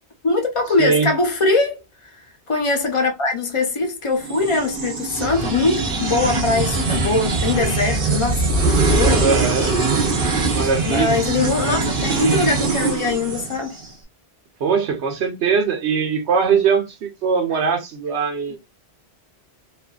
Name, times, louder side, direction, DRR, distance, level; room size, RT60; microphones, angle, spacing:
voice 1, 0.2-2.2 2.5-9.7 10.9-13.8, left 3 dB, 35° left, 0.6 m, -22 dB
voice 2, 0.8-1.1 9.2-9.8 10.5-11.2 14.6-18.6, right 5 dB, 85° right, 1.0 m, -21 dB
sound 1, 4.2-13.9, right 3 dB, 60° right, 1.0 m, -22 dB
2.6 x 2.4 x 2.2 m
omnidirectional pair, 1.1 m